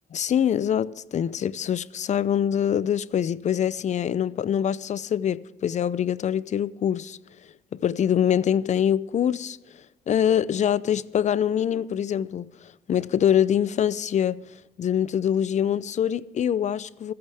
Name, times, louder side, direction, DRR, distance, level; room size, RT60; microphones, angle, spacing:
voice 1, 0.1-7.2 7.7-9.6 10.1-12.5 12.9-14.4 14.8-17.1, left 9 dB, 50° left, 0.6 m, -24 dB
26.0 x 8.7 x 3.5 m
supercardioid pair, 70°, 16 cm